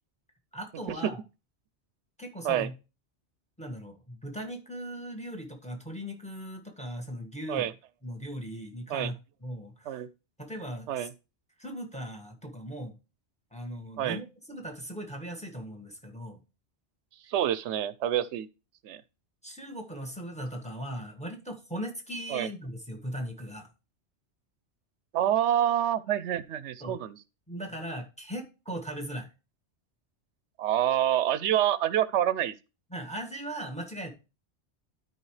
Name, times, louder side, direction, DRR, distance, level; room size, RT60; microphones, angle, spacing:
voice 1, 0.5-1.2 2.2-2.7 3.6-7.7 8.0-10.0 10.4-11.1 11.6-12.9 13.5-16.4 19.4-23.7 26.8-27.0 27.5-29.3 32.9-34.1, equal, 5° left, 1.6 m, -38 dB
voice 2, 17.3-18.5 18.8-19.0 22.3-22.5 25.1-27.2 30.6-32.5, right 11 dB, 85° right, 0.9 m, -27 dB
12.5 x 4.6 x 3.2 m
omnidirectional pair, 1.1 m